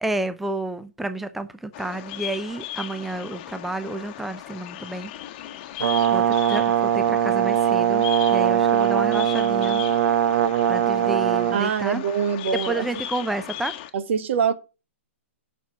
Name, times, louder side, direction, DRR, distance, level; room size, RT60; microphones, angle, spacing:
voice 1, 0.0-5.1 6.1-9.9 10.7-12.0 12.7-13.7, right 2 dB, ahead, 0.5 m, -30 dB
Bird vocalization bird call bird song, 1.7-13.9, left 13 dB, 40° left, 1.1 m, -37 dB
Brass instrument, 5.8-11.6, right 10 dB, 80° right, 1.0 m, -21 dB
voice 2, 11.5-12.9 13.9-14.5, right 7 dB, 65° right, 1.5 m, -24 dB
7.1 x 6.1 x 6.9 m
hypercardioid pair, 140°, 7 cm